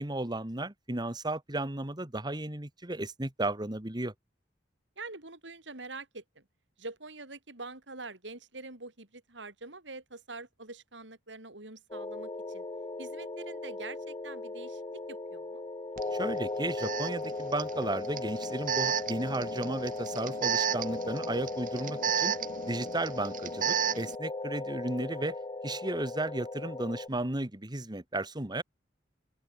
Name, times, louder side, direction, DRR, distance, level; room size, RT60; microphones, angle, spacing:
voice 1, 0.0-4.1 16.1-22.3 22.6-25.4 25.6-28.6, right 2 dB, 25° right, 1.7 m, -34 dB
voice 2, 5.0-6.4 6.8-12.6 13.0-15.6, right 3 dB, 75° right, 5.1 m, -45 dB
sound 1, 11.9-27.1, left 2 dB, 25° left, 0.9 m, -37 dB
Alarm, 16.0-16.1 16.8-24.2, right 8 dB, 45° right, 0.9 m, -33 dB
open air
head